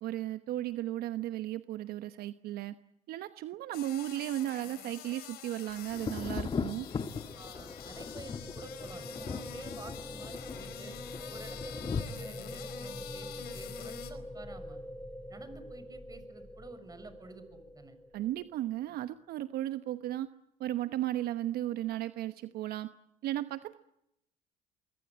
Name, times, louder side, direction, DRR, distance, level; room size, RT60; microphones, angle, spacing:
voice 1, 0.0-2.8 3.1-6.9 18.1-20.3 20.6-22.9 23.2-23.7, right 13 dB, 65° right, 12 dB, 1.1 m, -35 dB
sound 1, 3.7-14.1, left 9 dB, 70° left, 4.4 m, -47 dB
Thunder, 5.9-12.0, left 5 dB, 30° left, 1.6 m, -39 dB
sound 2, 6.8-18.7, left 1 dB, 10° left, 2.3 m, -45 dB
voice 2, 7.3-11.0 11.3-14.8 15.3-18.0, right 3 dB, 20° right, 11 dB, 6.2 m, -50 dB
25.0 x 23.5 x 8.8 m, 0.83 s
supercardioid pair, 85°, 17 cm